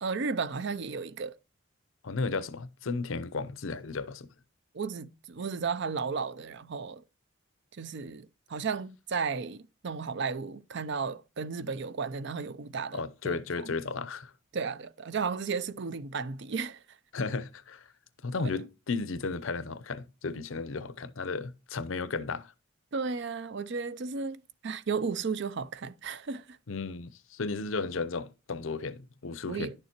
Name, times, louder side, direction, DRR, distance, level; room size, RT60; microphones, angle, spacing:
voice 1, 0.0-1.3 4.7-7.0 7.8-13.7 14.5-16.8 18.4-18.5 22.9-26.6 29.5-29.7, right 5 dB, 55° right, 0.5 m, -34 dB
voice 2, 2.0-4.3 12.9-14.3 17.1-17.8 18.2-22.5 26.7-29.7, left 4 dB, 75° left, 0.6 m, -34 dB
10.5 x 6.7 x 2.9 m
head